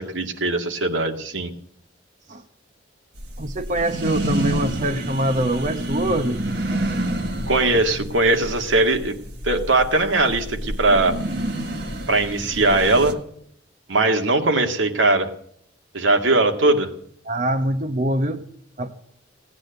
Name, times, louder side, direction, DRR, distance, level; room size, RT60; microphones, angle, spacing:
voice 1, 0.0-1.5 7.5-9.1 9.4-11.2 12.1-13.2 13.9-15.3 15.9-16.9, right 2 dB, 90° right, 4 dB, 2.1 m, -20 dB
sound 1, 3.2-13.1, right 1 dB, 55° right, 1.7 m, -29 dB
voice 2, 3.4-6.4 17.2-18.4 18.8-18.9, right 1 dB, 40° right, 7 dB, 0.9 m, -24 dB
17.5 x 9.7 x 8.0 m, 0.68 s
head